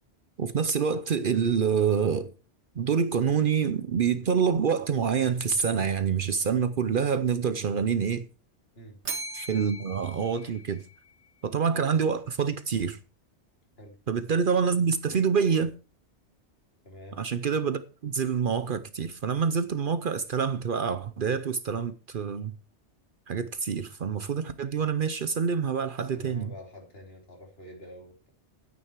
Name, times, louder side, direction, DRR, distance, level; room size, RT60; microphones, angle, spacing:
voice 1, 0.4-2.3 2.8-8.2 9.3-10.8 11.4-13.0 14.1-15.7 17.2-22.5 23.3-26.5, right 6 dB, 55° right, 0.8 m, -26 dB
Bell, 9.0-11.3, right 2 dB, 75° right, 1.9 m, -39 dB
voice 2, 16.8-17.2 26.0-28.3, equal, 60° left, 3.2 m, -47 dB
9.7 x 9.4 x 4.5 m
omnidirectional pair, 1.2 m